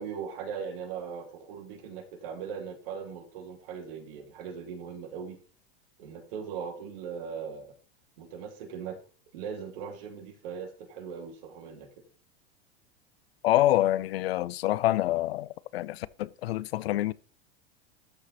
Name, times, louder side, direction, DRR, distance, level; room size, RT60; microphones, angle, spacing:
voice 1, 0.0-5.4 6.0-7.7 8.2-9.0 9.3-11.9, right 6 dB, 70° right, 3.0 m, -39 dB
voice 2, 13.4-17.1, left 14 dB, 90° left, 0.6 m, -26 dB
13.0 x 4.9 x 4.1 m
supercardioid pair, 125°, 30 cm